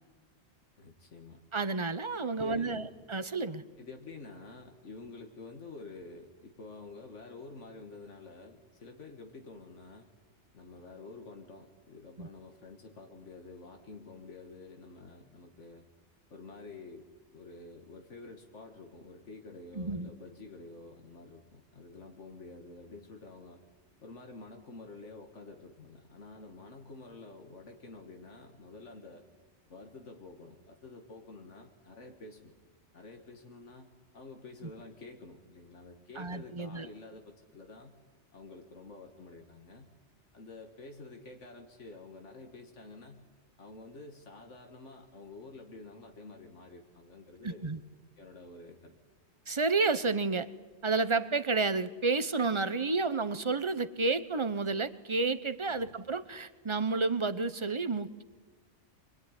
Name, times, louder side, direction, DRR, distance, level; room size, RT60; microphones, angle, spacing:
voice 1, 0.8-1.4 2.3-2.9 3.8-10.1 10.5-15.9 16.3-17.1 17.3-23.6 24.0-29.2 29.7-32.5 32.9-33.9 34.1-38.0 38.3-39.9 40.3-43.2 43.6-47.7 48.2-48.9 55.7-55.9, left 3 dB, 90° left, 3 dB, 2.1 m, -49 dB
voice 2, 1.5-2.8 3.1-3.6 12.2-12.3 19.7-20.1 36.2-36.9 47.4-47.8 49.5-50.5 50.8-58.2, right 3 dB, 25° right, 14 dB, 1.0 m, -30 dB
25.0 x 22.0 x 9.9 m, 1.3 s
omnidirectional pair, 1.2 m